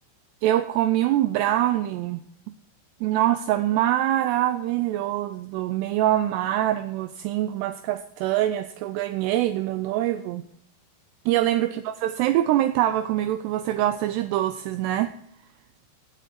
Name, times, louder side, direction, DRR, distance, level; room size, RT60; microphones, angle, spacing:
voice 1, 0.4-2.2 3.0-10.4 11.3-15.1, right 13 dB, 80° right, 10 dB, 2.6 m, -24 dB
16.0 x 8.3 x 4.1 m, 0.74 s
omnidirectional pair, 5.0 m